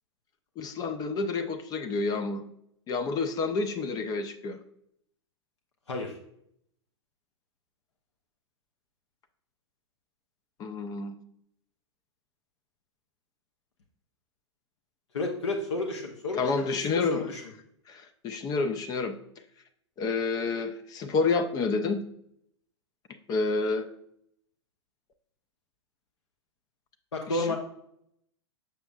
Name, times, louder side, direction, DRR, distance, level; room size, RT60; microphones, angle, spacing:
voice 1, 0.6-2.4 2.9-4.6 10.6-11.1 16.4-17.3 17.9-19.2 20.0-22.0 23.3-23.9 27.3-27.6, left 4 dB, 25° left, 8 dB, 0.4 m, -29 dB
voice 2, 5.9-6.2 15.1-17.4 27.1-27.6, left 2 dB, 70° left, 1 dB, 0.8 m, -31 dB
6.7 x 5.9 x 2.4 m, 0.72 s
figure-of-eight pair, 100°, 15 cm